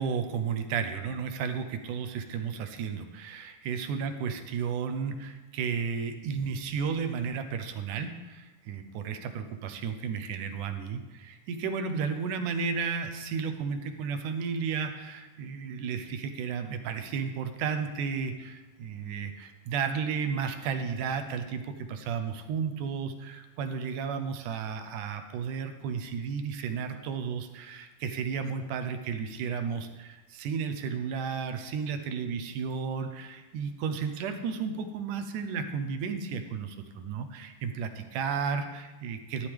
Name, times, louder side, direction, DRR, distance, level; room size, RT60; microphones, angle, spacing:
voice 1, 0.0-39.5, right 6 dB, 80° right, 7 dB, 2.4 m, -33 dB
13.0 x 11.5 x 3.5 m, 1.1 s
omnidirectional pair, 3.6 m